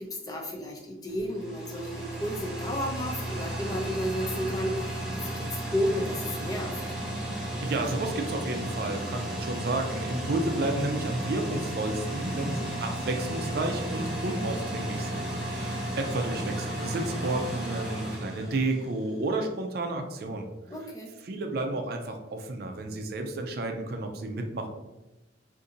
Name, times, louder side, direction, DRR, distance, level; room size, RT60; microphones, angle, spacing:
voice 1, 0.0-6.8 20.7-21.1, equal, 20° left, 0 dB, 0.5 m, -32 dB
sound 1, 1.1-19.2, right 1 dB, ahead, 1.0 m, -34 dB
voice 2, 7.6-20.5 21.2-24.7, right 2 dB, 55° right, 4 dB, 0.4 m, -31 dB
2.6 x 2.6 x 3.8 m, 1.0 s
head